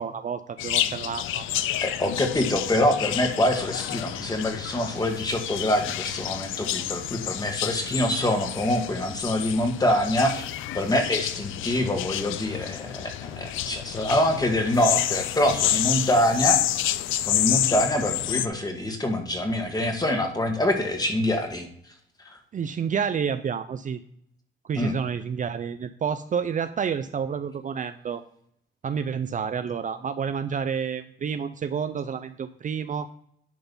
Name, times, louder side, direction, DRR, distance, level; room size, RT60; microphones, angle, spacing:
voice 1, 0.0-1.4 22.5-24.0 24.6-28.2 28.8-33.1, right 7 dB, 40° right, 10 dB, 0.5 m, -29 dB
sound 1, 0.6-18.5, left 13 dB, 80° left, 0.5 m, -29 dB
voice 2, 1.8-10.5 10.7-16.6 17.2-21.7 24.8-25.0, left 1 dB, 20° left, 4 dB, 1.9 m, -25 dB
10.5 x 3.9 x 5.5 m, 0.69 s
cardioid pair, 90°, 20 cm